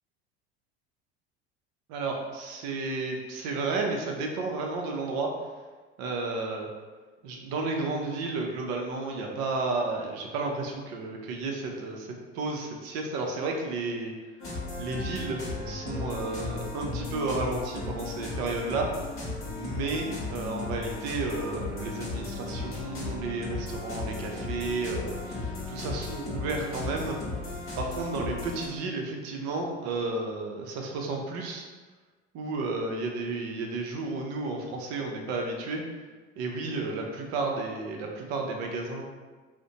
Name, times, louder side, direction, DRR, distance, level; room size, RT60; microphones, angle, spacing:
voice 1, 1.9-5.3 6.0-6.7 7.2-14.1 14.8-18.9 19.5-27.2 27.8-31.6 32.3-35.8 36.4-39.0, right 3 dB, 50° right, 1 dB, 0.6 m, -32 dB
sound 1, 14.4-28.7, left 3 dB, 40° left, 0.9 m, -35 dB
2.4 x 2.1 x 2.8 m, 1.3 s
hypercardioid pair, 70°, 33 cm